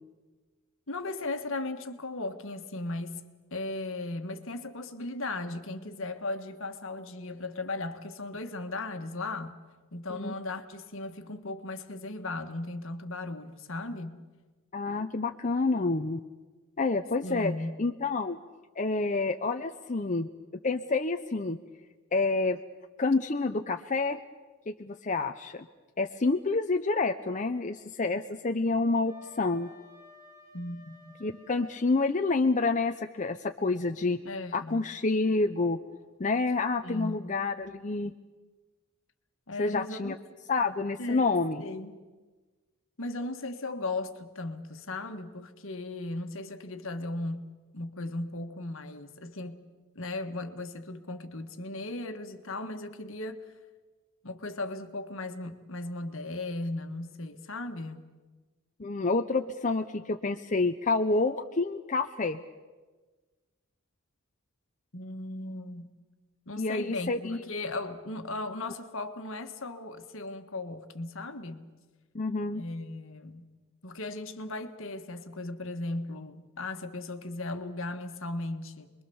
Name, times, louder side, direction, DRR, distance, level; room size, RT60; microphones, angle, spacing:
voice 1, 0.9-3.2 3.5-9.5 9.9-14.2 17.2-17.7 30.5-31.1 34.2-34.8 36.8-37.3 39.5-40.1 41.0-41.3 41.6-42.0 43.0-47.5 47.7-49.6 49.9-53.5 54.2-58.1 64.9-65.9 66.5-71.7 72.5-73.5 73.8-78.9, left 2 dB, 60° left, 1.7 m, -37 dB
voice 2, 14.7-16.2 16.8-17.5 17.8-18.4 18.8-20.3 20.6-21.6 22.1-22.6 23.0-24.2 24.7-25.7 26.0-29.7 31.2-34.2 34.5-35.8 36.2-38.1 39.6-40.2 40.5-41.6 58.8-62.4 66.6-67.4 72.1-72.6, left 3 dB, 35° left, 0.7 m, -28 dB
Wind instrument woodwind instrument, 29.0-32.2, left 2 dB, 15° right, 7.1 m, -55 dB
28.0 x 22.0 x 7.1 m
head